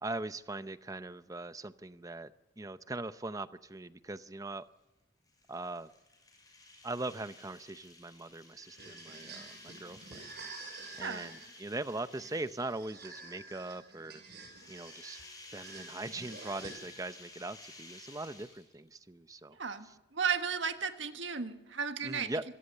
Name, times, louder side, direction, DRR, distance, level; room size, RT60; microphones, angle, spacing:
voice 1, 0.0-2.3 2.6-4.6 5.5-5.9 6.8-10.3 11.0-14.2 14.7-15.2 15.5-19.6 19.8-19.9 22.0-22.4, right 2 dB, 20° right, 13 dB, 0.7 m, -41 dB
sound 1, 5.3-13.0 14.4-18.9, left 2 dB, 20° left, 6.2 m, -54 dB
sound 2, 8.5-17.2, right 3 dB, 60° right, 6.4 m, -50 dB
voice 2, 19.5-19.9 20.1-22.3, right 6 dB, 75° right, 8 dB, 1.5 m, -34 dB
26.0 x 17.0 x 6.8 m, 1.0 s
head